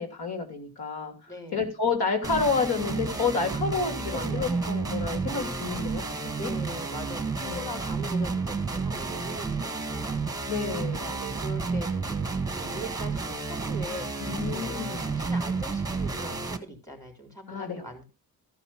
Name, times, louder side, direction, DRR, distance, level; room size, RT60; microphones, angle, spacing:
voice 1, 0.0-1.1 1.5-6.5 7.4-7.8 10.5-11.1 14.3-15.1 17.5-17.9, left 5 dB, 85° left, 5 dB, 3.0 m, -30 dB
voice 2, 1.3-1.6 4.1-4.8 6.3-18.0, right 1 dB, 10° left, 2 dB, 3.8 m, -41 dB
sound 1, 2.2-16.6, right 4 dB, 10° right, 1.2 m, -31 dB
14.5 x 5.0 x 6.0 m, 0.30 s
cardioid pair, 130°, 37 cm